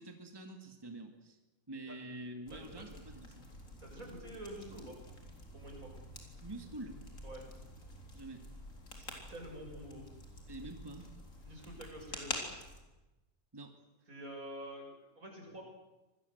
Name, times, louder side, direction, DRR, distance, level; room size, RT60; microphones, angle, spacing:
voice 1, 0.0-1.4 1.7-3.5 6.4-7.0 8.1-8.5 10.5-11.1 13.5-13.7, right 2 dB, 15° right, 5 dB, 2.1 m, -47 dB
sound 1, 2.5-12.8, left 1 dB, 65° left, 4.4 m, -48 dB
voice 2, 2.5-2.8 3.8-5.0 5.5-5.9 7.2-7.4 8.9-10.1 11.4-12.4 14.1-15.6, right 1 dB, 75° right, 1 dB, 7.4 m, -48 dB
26.0 x 19.5 x 8.1 m, 1.0 s
omnidirectional pair, 1.5 m